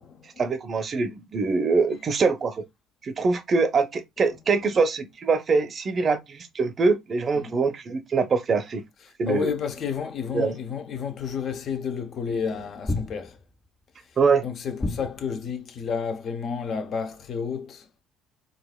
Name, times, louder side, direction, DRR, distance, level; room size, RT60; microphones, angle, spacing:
voice 1, 0.4-2.6 3.0-8.8 9.2-9.5 10.3-10.6 14.2-14.4, right 4 dB, 45° right, 0.7 m, -23 dB
voice 2, 9.3-13.4 14.4-17.9, left 6 dB, 55° left, 0.7 m, -31 dB
sound 1, 12.9-13.7 14.8-15.6, left 2 dB, 15° left, 0.5 m, -31 dB
3.9 x 2.4 x 2.3 m
supercardioid pair, 70°, 0 cm